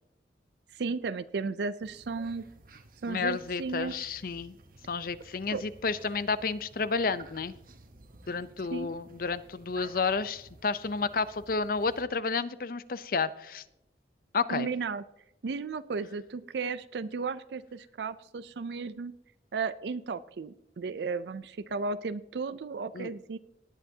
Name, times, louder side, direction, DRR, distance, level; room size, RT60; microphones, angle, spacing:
voice 1, 0.7-2.5 3.0-4.1 5.5-5.6 8.7-8.9 14.5-15.0 15.4-19.1 19.5-23.4, right 4 dB, 70° right, 14 dB, 0.4 m, -34 dB
sound 1, 1.8-12.0, right 2 dB, 50° right, 1.1 m, -54 dB
voice 2, 3.1-4.6 4.9-7.5 8.3-13.6 14.3-14.7 22.9-23.1, left 4 dB, 55° left, 15 dB, 0.6 m, -31 dB
18.5 x 9.2 x 2.8 m, 0.84 s
head